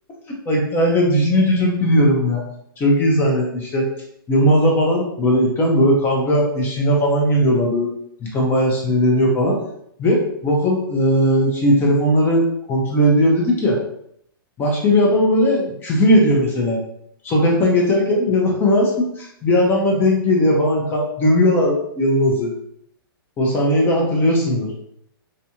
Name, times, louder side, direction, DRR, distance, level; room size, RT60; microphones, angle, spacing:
voice 1, 0.5-2.4 2.8-3.9 4.3-7.9 8.2-9.6 10.0-13.8 14.6-16.8 17.2-22.5 23.4-24.7, equal, 15° left, -2 dB, 0.5 m, -18 dB
2.5 x 2.2 x 2.8 m, 0.72 s
hypercardioid pair, 150°, 12 cm